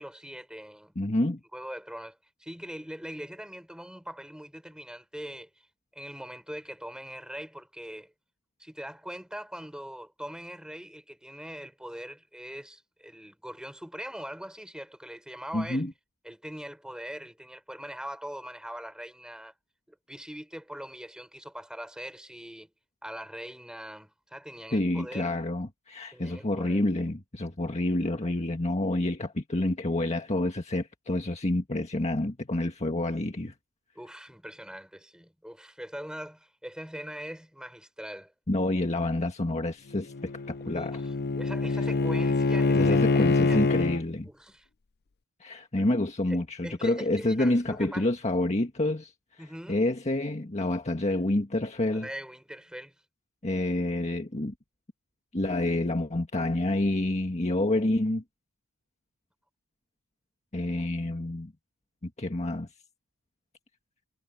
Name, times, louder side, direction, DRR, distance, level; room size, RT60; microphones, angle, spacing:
voice 1, 0.0-0.9 1.5-5.5 5.9-8.1 8.6-15.8 16.2-19.5 19.9-22.7 23.0-25.3 26.1-26.8 34.0-38.3 40.7-43.6 44.2-44.7 45.8-45.9 46.3-48.1 49.4-49.8 51.9-52.9, equal, 5° right, 5.5 m, -42 dB
voice 2, 1.0-1.4 15.5-15.9 24.7-33.5 38.5-41.0 42.7-44.3 45.4-49.1 49.7-52.1 53.4-54.5 55.3-58.2 60.5-61.5 62.0-62.7, left 1 dB, 30° left, 1.7 m, -28 dB
Bowed string instrument, 39.9-44.0, left 3 dB, 45° left, 0.6 m, -25 dB
head